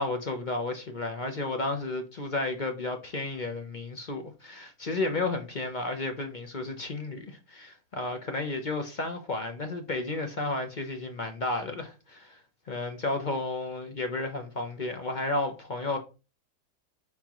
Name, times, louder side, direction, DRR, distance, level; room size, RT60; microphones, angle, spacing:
voice 1, 0.0-12.4 12.7-16.0, left 2 dB, 35° left, 0.8 m, -32 dB
8.9 x 3.8 x 3.1 m
omnidirectional pair, 1.8 m